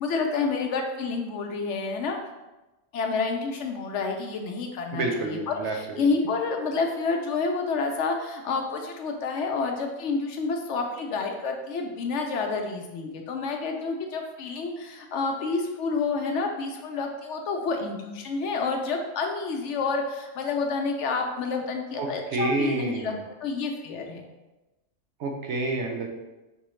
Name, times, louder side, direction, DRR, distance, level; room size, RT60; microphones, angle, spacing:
voice 1, 0.0-2.2 2.9-24.2, left 4 dB, 70° left, 3 dB, 0.8 m, -29 dB
voice 2, 4.9-6.0 22.0-23.2 25.2-26.1, right 2 dB, 65° right, 1 dB, 0.9 m, -29 dB
5.4 x 2.9 x 3.1 m, 1.1 s
omnidirectional pair, 1.3 m